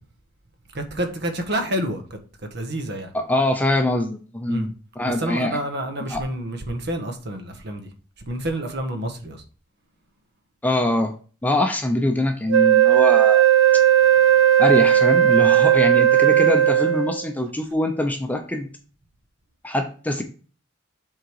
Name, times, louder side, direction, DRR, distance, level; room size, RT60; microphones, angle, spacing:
voice 1, 0.7-2.2 2.5-3.1 4.5-4.7 5.1-7.9 8.3-9.4, right 1 dB, 55° right, 6 dB, 1.4 m, -28 dB
voice 2, 3.1-5.6 6.1-6.2 10.6-11.1 11.4-13.4 14.6-18.7 19.6-20.2, left 1 dB, 10° left, 4 dB, 0.7 m, -23 dB
Wind instrument woodwind instrument, 12.5-17.2, right 11 dB, 70° right, 0.4 m, -16 dB
7.8 x 3.9 x 4.7 m, 0.38 s
head